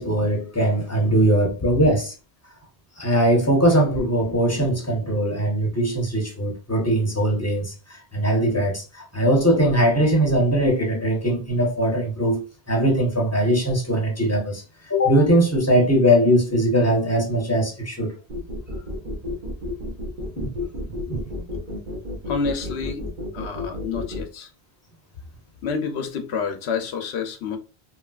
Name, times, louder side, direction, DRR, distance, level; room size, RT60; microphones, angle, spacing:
voice 1, 0.0-2.1 3.0-18.1 20.4-20.5 21.1-21.3, right 1 dB, 15° left, 0.7 m, -21 dB
sound 1, 18.3-24.2, left 2 dB, 55° right, 0.9 m, -31 dB
voice 2, 22.3-23.0 23.3-24.5 25.6-27.6, left 5 dB, 80° left, 0.9 m, -28 dB
3.1 x 2.7 x 2.3 m
omnidirectional pair, 1.1 m